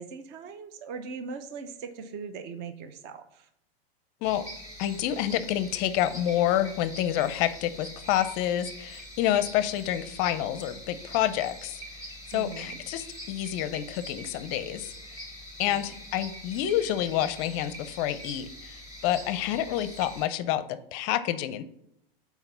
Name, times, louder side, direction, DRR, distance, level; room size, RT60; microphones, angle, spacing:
voice 1, 0.0-3.5 12.3-12.8 15.6-15.9, right 5 dB, 35° right, 9 dB, 0.7 m, -40 dB
sound 1, 4.2-20.3, equal, 10° right, 1.4 m, -44 dB
voice 2, 4.8-11.8 12.3-14.9 15.6-21.6, left 12 dB, 40° left, 13 dB, 0.5 m, -28 dB
5.8 x 4.5 x 5.6 m, 0.76 s
hypercardioid pair, 125°, 30 cm